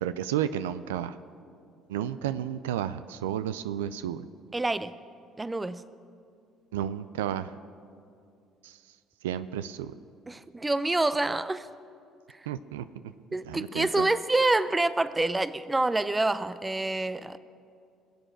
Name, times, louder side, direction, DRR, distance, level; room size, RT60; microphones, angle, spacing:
voice 1, 0.0-1.2 1.9-4.3 6.7-7.5 8.6-8.8 9.2-9.9 12.5-12.9 13.5-14.1, right 10 dB, 85° right, 13 dB, 0.4 m, -32 dB
voice 2, 4.5-4.9 5.4-5.8 10.3-11.7 13.3-17.4, right 2 dB, 20° right, 15 dB, 0.6 m, -27 dB
22.0 x 7.9 x 6.5 m, 2.4 s
hypercardioid pair, 60°, 0 cm